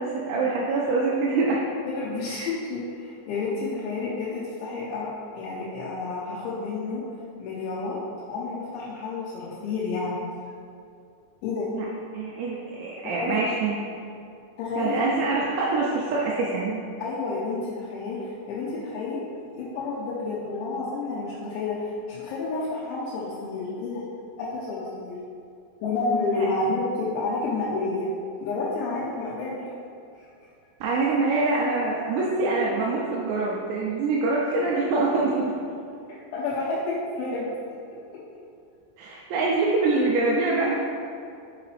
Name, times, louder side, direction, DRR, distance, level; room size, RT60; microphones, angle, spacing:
voice 1, 0.0-1.6 2.3-2.5 11.7-11.9 12.1-13.8 14.8-16.8 26.3-26.5 30.8-35.5 39.0-40.8, right 3 dB, 80° right, -4 dB, 2.8 m, -25 dB
voice 2, 1.9-5.1 5.3-7.0 7.4-8.0 8.3-10.2 11.4-11.7 13.0-13.4 14.6-15.0 17.0-19.2 19.5-24.0 24.4-25.2 25.8-28.1 28.4-29.8 36.1-37.8, left 3 dB, 90° left, -7 dB, 3.2 m, -30 dB
7.1 x 5.8 x 3.2 m, 2.4 s
omnidirectional pair, 5.2 m